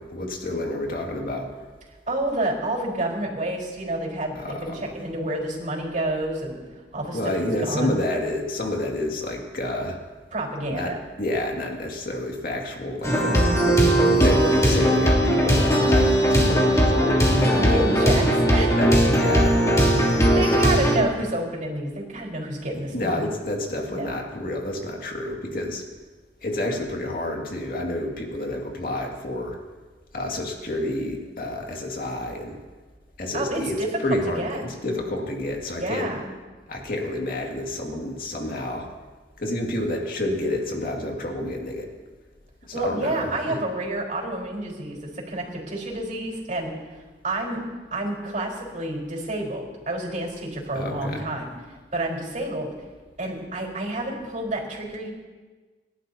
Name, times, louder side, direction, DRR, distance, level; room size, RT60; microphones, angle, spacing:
voice 1, 0.0-1.5 4.3-4.8 7.1-10.0 10.7-10.9 11.2-13.4 14.1-17.9 18.8-19.5 19.9-20.0 20.5-20.6 22.9-25.8 26.4-29.6 30.1-32.6 33.2-36.1 36.7-38.9 39.4-41.9 42.6-43.6 50.7-51.2, left 1 dB, 55° left, 1 dB, 2.3 m, -29 dB
voice 2, 2.1-6.6 6.9-7.2 7.6-8.0 10.3-11.0 17.6-18.2 18.5-18.8 20.0-23.2 23.9-24.1 33.3-33.9 34.4-34.6 35.8-36.3 42.7-46.7 47.2-47.6 47.9-51.5 51.9-52.7 53.2-55.1, right 1 dB, 45° right, -2 dB, 4.4 m, -29 dB
sound 1, 13.0-21.0, equal, 20° left, 2.8 m, -19 dB
29.0 x 11.5 x 2.9 m, 1.3 s
head